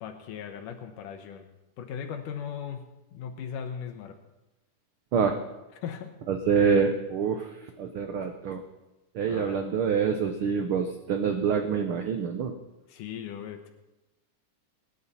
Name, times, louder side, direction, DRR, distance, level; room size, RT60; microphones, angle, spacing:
voice 1, 0.0-1.5 1.8-2.8 3.1-4.2 5.8-6.1 9.2-9.6 12.9-13.7, left 8 dB, 85° left, 5 dB, 2.6 m, -38 dB
voice 2, 6.3-7.5 7.8-8.6 9.1-12.5, right 6 dB, 75° right, 6 dB, 1.2 m, -26 dB
23.5 x 10.5 x 4.2 m, 1.0 s
omnidirectional pair, 3.6 m